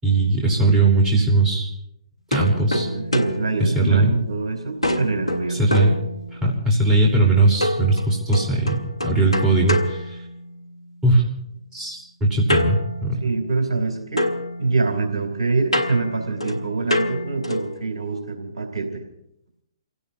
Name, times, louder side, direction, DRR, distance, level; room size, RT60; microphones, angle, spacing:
voice 1, 0.0-1.7 2.3-2.9 3.6-4.1 5.5-5.9 6.4-10.1 11.0-11.2 11.7-13.2, right 2 dB, 15° right, -2 dB, 4.2 m, -19 dB
sound 1, 2.3-4.4 4.8-6.7 7.6-10.8 12.5-13.9 14.2-17.8, left 1 dB, 90° left, 1.4 m, -27 dB
voice 2, 2.8-5.8 13.2-14.3 14.6-19.0, right 3 dB, 70° right, 2 dB, 3.4 m, -25 dB
29.0 x 17.0 x 2.9 m, 0.78 s
figure-of-eight pair, 125°, 3 cm